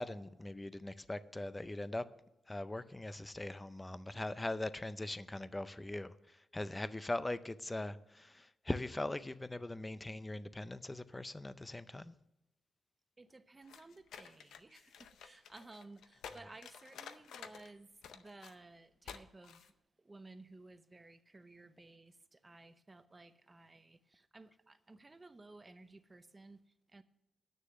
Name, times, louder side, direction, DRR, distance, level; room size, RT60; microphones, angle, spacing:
voice 1, 0.0-2.0 2.5-12.1, left 2 dB, 15° left, 0.5 m, -41 dB
voice 2, 13.2-27.0, right 2 dB, 20° right, 0.7 m, -56 dB
sound 1, 13.6-17.7 18.0-18.5 19.0-19.2 19.4-19.7, left 7 dB, 90° left, 0.6 m, -52 dB
9.4 x 6.6 x 7.9 m
cardioid pair, 105°, 0 cm